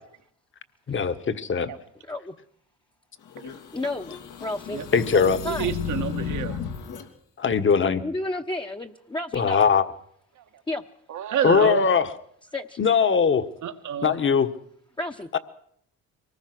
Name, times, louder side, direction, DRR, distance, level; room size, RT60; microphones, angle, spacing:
voice 1, 0.9-1.7 4.9-5.4 7.4-8.0 9.3-9.8 11.4-12.1 12.8-13.5 14.0-14.5 15.3-15.4, left 6 dB, 40° left, 10 dB, 1.6 m, -20 dB
sound 1, 3.3-7.0, left 7 dB, 85° left, 3.0 m, -34 dB
voice 2, 3.7-4.1 4.4-4.8 5.4-5.8 8.0-9.6 10.7-10.8 12.5-12.8 15.0-15.3, left 1 dB, 15° left, 2 dB, 1.1 m, -31 dB
voice 3, 5.1-6.6 11.1-11.9 13.6-14.1, right 9 dB, 75° right, 7 dB, 1.8 m, -29 dB
24.0 x 19.5 x 6.2 m, 0.67 s
cardioid pair, 90°, 30 cm